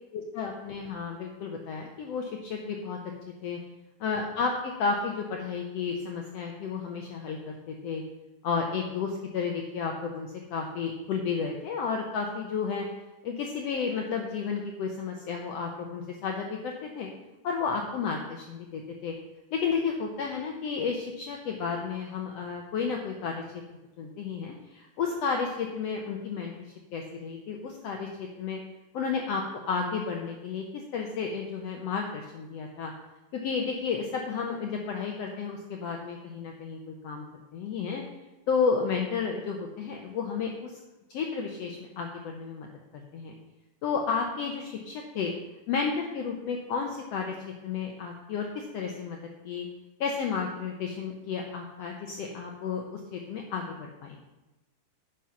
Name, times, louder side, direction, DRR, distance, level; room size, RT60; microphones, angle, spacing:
voice 1, 0.1-3.0 3.4-3.6 4.0-8.0 8.4-12.9 13.2-17.1 17.4-19.1 19.5-23.4 24.0-26.5 26.9-28.6 28.9-32.9 33.3-37.3 37.5-38.0 38.5-40.8 41.1-42.7 42.9-43.4 43.8-45.3 45.7-47.3 47.6-49.2 49.4-49.7 50.0-54.2, left 5 dB, 75° left, 2 dB, 1.5 m, -32 dB
9.8 x 5.7 x 5.7 m, 1.1 s
omnidirectional pair, 3.8 m